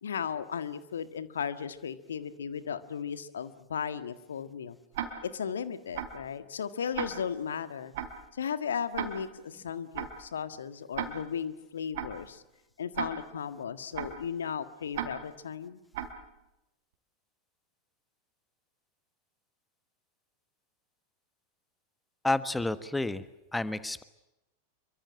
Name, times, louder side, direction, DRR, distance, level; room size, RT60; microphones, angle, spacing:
voice 1, 0.0-4.8 5.2-7.9 8.3-12.4 12.8-15.8, left 7 dB, 65° left, 12 dB, 1.7 m, -36 dB
Tick-tock, 4.9-5.4 5.9-6.3 6.9-7.4 7.9-8.3 8.9-9.4 9.9-10.3 10.9-11.4 11.9-12.3 12.9-13.4 13.9-14.3 14.9-15.4 15.9-16.3, right 9 dB, 55° right, 3.4 m, -37 dB
voice 2, 22.2-23.2 23.5-24.0, left 2 dB, 5° left, 14 dB, 1.4 m, -30 dB
27.5 x 24.0 x 7.6 m, 0.88 s
figure-of-eight pair, 90°, 0 cm